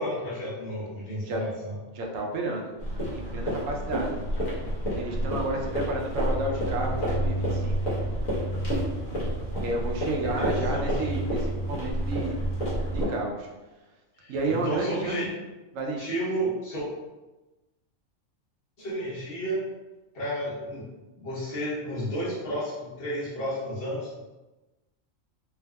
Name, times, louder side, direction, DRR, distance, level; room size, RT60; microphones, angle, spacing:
voice 1, 0.0-1.8 10.4-11.1 14.2-15.3 16.0-16.9 18.8-19.6 20.1-20.9 21.2-24.1, equal, 50° left, -8 dB, 1.1 m, -32 dB
voice 2, 1.9-4.2 4.8-7.8 9.6-12.4 12.9-13.5 14.3-15.4 15.7-16.1, right 2 dB, 80° right, 0 dB, 1.0 m, -31 dB
sound 1, 2.8-13.1, equal, 90° left, 1.4 m, -29 dB
3.5 x 2.6 x 2.2 m, 1.1 s
omnidirectional pair, 1.3 m